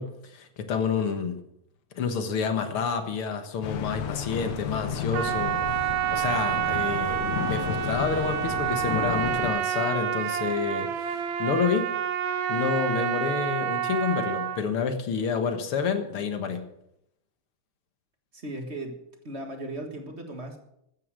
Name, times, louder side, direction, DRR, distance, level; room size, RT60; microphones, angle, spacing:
voice 1, 0.0-1.4 2.0-11.9 12.5-16.6, left 6 dB, 55° left, 7 dB, 2.0 m, -29 dB
sound 1, 3.6-9.5, left 8 dB, 85° left, 2.5 m, -33 dB
Trumpet, 5.1-14.6, right 11 dB, 75° right, 2.2 m, -28 dB
voice 2, 18.3-19.0 19.2-20.6, right 1 dB, 30° right, 4 dB, 1.2 m, -36 dB
14.0 x 9.6 x 6.5 m, 0.79 s
omnidirectional pair, 3.3 m